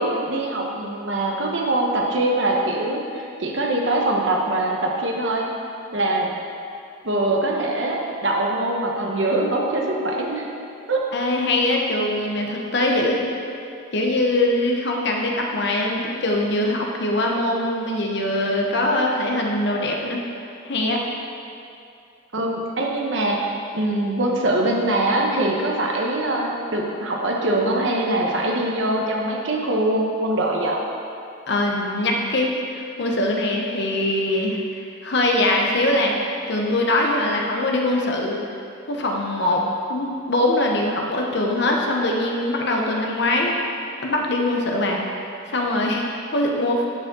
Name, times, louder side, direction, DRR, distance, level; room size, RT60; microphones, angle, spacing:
voice 1, 0.0-5.4 5.9-6.3 7.0-10.5 10.9-11.0 22.3-30.8, right 1 dB, 65° right, -1 dB, 1.0 m, -23 dB
voice 2, 11.1-13.4 13.9-20.2 20.6-21.0 31.5-36.2 36.5-38.4 38.9-43.7 44.0-45.1 45.5-46.8, left 1 dB, 60° left, 0 dB, 0.9 m, -22 dB
11.0 x 5.2 x 3.8 m, 2.5 s
head